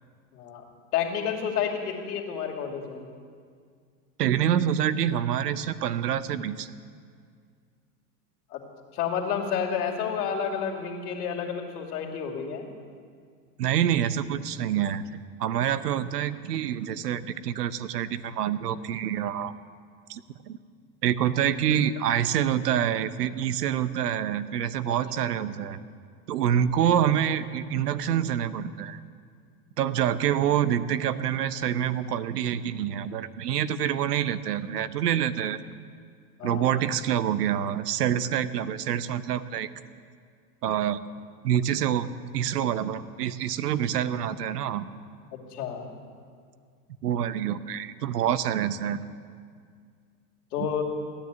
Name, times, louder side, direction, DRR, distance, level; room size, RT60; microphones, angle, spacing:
voice 1, 0.3-0.6 0.9-3.0 8.5-8.6 8.9-12.7 24.9-25.3 30.3-30.4 36.4-36.9 45.3-45.9 50.5-50.8, left 7 dB, 75° left, 1 dB, 2.7 m, -30 dB
voice 2, 4.2-6.7 13.6-15.0 15.4-19.5 20.1-20.2 20.5-20.6 21.0-25.8 26.3-29.0 29.8-35.6 36.4-39.7 40.6-41.0 41.4-42.1 42.3-44.8 47.0-49.0 50.6-50.7, right 10 dB, 85° right, 14 dB, 0.9 m, -26 dB
16.0 x 10.0 x 8.2 m, 2.1 s
hypercardioid pair, 110°, 46 cm